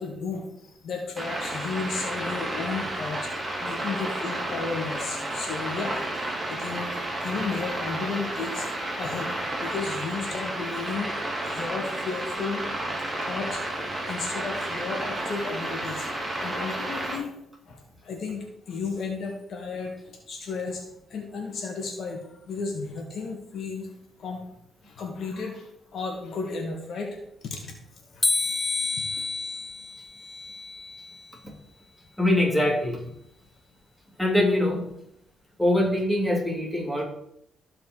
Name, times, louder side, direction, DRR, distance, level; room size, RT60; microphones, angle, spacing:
voice 1, 0.0-9.3 9.6-11.1 11.4-12.7 13.2-16.1 16.4-17.3 17.7-23.9 24.2-24.4 24.8-27.2 27.4-27.8 28.0-28.4 29.1-29.2, left 4 dB, 60° left, 2 dB, 2.1 m, -34 dB
sound 1, 1.2-17.2, right 1 dB, 15° right, 3.5 m, -31 dB
sound 2, 28.2-31.3, left 3 dB, 20° left, 0.3 m, -29 dB
voice 2, 32.2-33.1 34.2-34.9 35.6-37.0, left 1 dB, ahead, -3 dB, 3.3 m, -23 dB
14.5 x 5.1 x 4.8 m, 0.76 s
cardioid pair, 90°, 0 cm